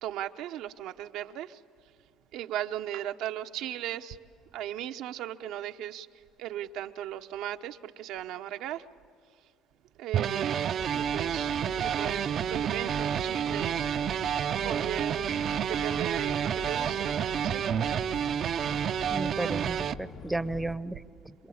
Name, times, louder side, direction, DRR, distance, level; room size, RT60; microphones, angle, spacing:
voice 1, 0.0-1.6 2.3-4.2 4.5-6.1 6.4-8.8 10.0-13.8 14.6-15.3 15.6-17.6, right 12 dB, 75° right, 7 dB, 0.9 m, -37 dB
sound 1, 10.1-19.9, right 9 dB, 50° right, 0.6 m, -29 dB
sound 2, 10.8-20.8, left 4 dB, 55° left, 1.2 m, -44 dB
voice 2, 19.1-21.3, right 2 dB, 10° right, 15 dB, 0.8 m, -34 dB
27.0 x 23.0 x 8.6 m, 2.3 s
cardioid pair, 110°, 0 cm